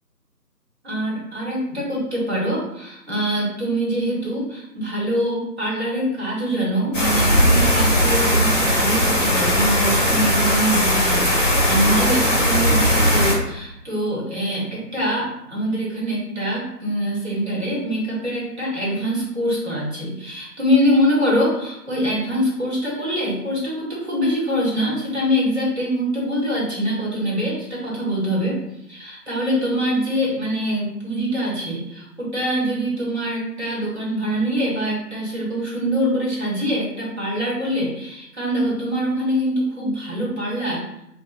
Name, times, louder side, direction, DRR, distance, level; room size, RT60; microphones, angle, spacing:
voice 1, 0.8-28.6 28.9-40.8, equal, 40° right, -6 dB, 1.1 m, -24 dB
sound 1, 6.9-13.3, equal, 50° left, 0.7 m, -18 dB
3.4 x 2.1 x 2.4 m, 0.82 s
figure-of-eight pair, 165°, 50 cm